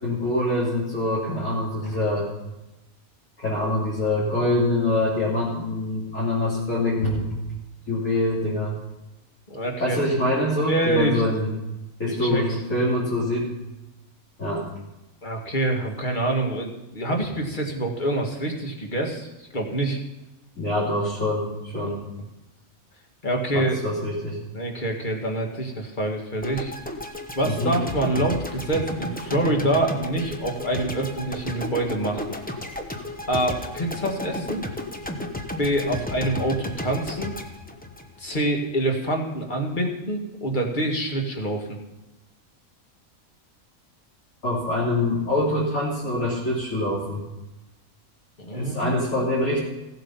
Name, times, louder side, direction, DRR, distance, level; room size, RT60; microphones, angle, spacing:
voice 1, 0.0-2.3 3.4-7.2 7.9-8.8 9.8-11.5 12.0-13.5 14.4-14.6 20.6-22.0 23.5-24.4 27.4-27.8 44.4-47.2 48.5-49.6, left 1 dB, 65° left, -9 dB, 3.3 m, -24 dB
voice 2, 9.5-10.0 10.6-11.2 12.1-12.6 15.2-20.0 21.8-21.9 23.2-23.8 24.5-26.7 27.4-32.4 33.3-34.6 35.6-37.3 38.2-41.8 48.4-49.3, right 1 dB, 35° left, 1 dB, 2.0 m, -26 dB
sound 1, 26.4-38.6, left 1 dB, 5° left, 0.8 m, -33 dB
16.0 x 8.0 x 5.6 m, 1.0 s
omnidirectional pair, 1.5 m